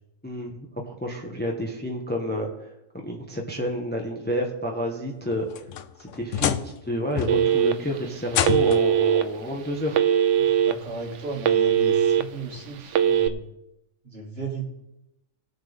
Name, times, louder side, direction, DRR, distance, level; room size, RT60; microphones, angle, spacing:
voice 1, 0.2-2.5 3.0-5.5 6.0-6.6 6.8-10.0, equal, 10° left, 0 dB, 1.2 m, -29 dB
sound 1, 5.3-6.9 7.2-7.6 8.3-9.0 10.1-10.2 10.9-11.0 12.6-12.7, left 10 dB, 70° left, 0.9 m, -28 dB
Telephone, 7.3-8.0 8.4-9.2 9.9-10.7 11.1-12.2 12.9-13.3, right 9 dB, 70° right, 0.9 m, -20 dB
voice 2, 10.4-13.4 14.0-14.6, right 3 dB, 45° right, -2 dB, 2.6 m, -35 dB
19.0 x 7.3 x 3.6 m, 0.89 s
omnidirectional pair, 1.4 m